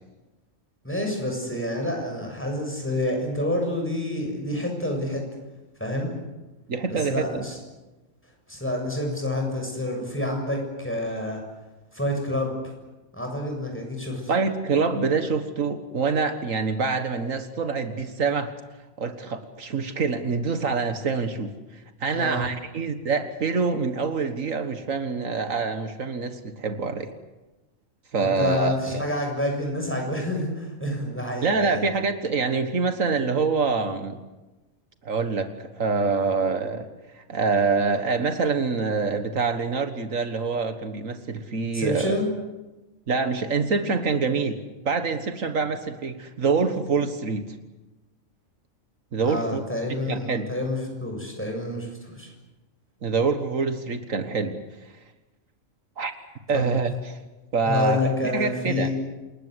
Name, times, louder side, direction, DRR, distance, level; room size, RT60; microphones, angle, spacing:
voice 1, 0.8-5.2 5.8-6.1 6.9-7.6 8.5-11.4 11.9-12.5 13.1-14.3 22.1-22.4 28.2-31.8 41.7-42.3 49.2-52.3 56.5-56.7 57.6-58.9, left 1 dB, 10° left, 2 dB, 7.0 m, -28 dB
voice 2, 6.7-7.4 14.3-18.5 19.0-21.5 22.0-27.1 28.1-29.1 31.4-34.2 35.0-42.1 43.1-47.6 49.1-49.6 50.1-50.5 53.0-54.6 56.0-56.1 56.5-57.2 57.5-58.0 58.3-58.9, right 4 dB, 75° right, 8 dB, 1.9 m, -25 dB
27.5 x 21.0 x 8.1 m, 1.1 s
omnidirectional pair, 1.4 m